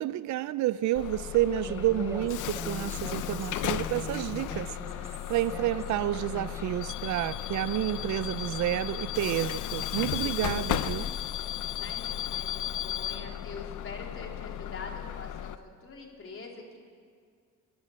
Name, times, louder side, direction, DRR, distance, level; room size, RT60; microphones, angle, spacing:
voice 1, 0.0-11.1, right 13 dB, 70° right, 0.6 m, -30 dB
Bus / Alarm, 0.9-15.5, left 12 dB, 80° left, 0.8 m, -35 dB
Human voice, 1.6-6.8, equal, 10° right, 3.1 m, -42 dB
voice 2, 11.8-15.5 15.8-16.8, left 4 dB, 45° left, 3.9 m, -44 dB
23.0 x 13.5 x 8.9 m
cardioid pair, 90°, 30 cm